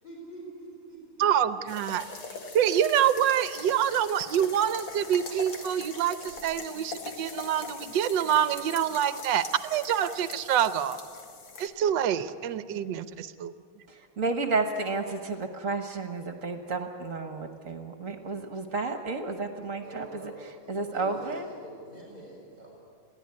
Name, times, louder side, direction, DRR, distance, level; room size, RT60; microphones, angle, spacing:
voice 1, 0.0-1.0 19.8-20.4 20.6-22.7, right 1 dB, 20° left, -4 dB, 5.4 m, -45 dB
voice 2, 1.2-2.0 2.5-11.0 11.6-13.5, right 9 dB, 65° right, 13 dB, 1.4 m, -26 dB
sound 1, 1.7-11.7, left 4 dB, 70° left, 2.8 m, -42 dB
voice 3, 14.2-20.3 20.7-21.5, right 3 dB, 45° right, 6 dB, 1.6 m, -31 dB
22.0 x 16.0 x 9.8 m, 2.4 s
omnidirectional pair, 2.3 m